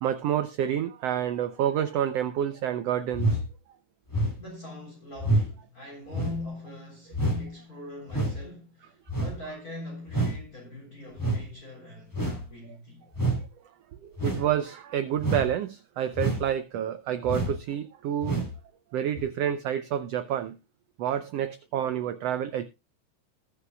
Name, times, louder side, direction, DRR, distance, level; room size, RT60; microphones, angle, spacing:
voice 1, 0.0-3.4 14.0-18.4 18.9-20.5 21.0-22.6, right 10 dB, 80° right, 1.5 m, -28 dB
sound 1, 3.1-3.5 4.1-4.4 5.2-5.5 6.1-6.4 7.1-7.4 8.1-8.4 9.1-9.4 10.1-10.4 11.2-11.4 12.1-12.5 13.1-13.4 14.2-14.5 15.2-15.5 16.1-16.5 17.2-17.6 18.2-18.5 19.2-19.3, right 1 dB, 5° left, 2.9 m, -27 dB
voice 2, 4.4-13.0, left 1 dB, 30° left, 3.8 m, -42 dB
20.0 x 6.9 x 2.3 m
omnidirectional pair, 3.6 m